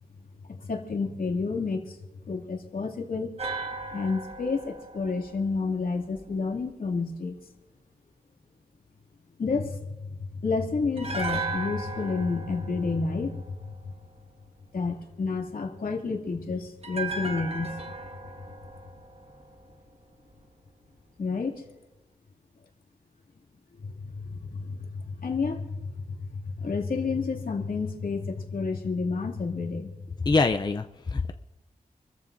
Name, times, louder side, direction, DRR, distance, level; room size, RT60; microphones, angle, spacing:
voice 1, 0.5-2.0 2.3-3.3 3.9-7.3 9.4-10.1 10.4-13.7 14.7-17.8 21.2-21.6 23.8-29.9, left 4 dB, 75° left, 0 dB, 2.5 m, -30 dB
sound 1, 3.4-6.6 11.0-14.2 16.8-20.0 20.3-20.4, right 3 dB, 45° right, 1.4 m, -37 dB
voice 2, 30.2-31.3, left 3 dB, 30° left, 7 dB, 0.5 m, -25 dB
27.5 x 14.5 x 2.6 m, 1.0 s
wide cardioid pair, 115°, 15 cm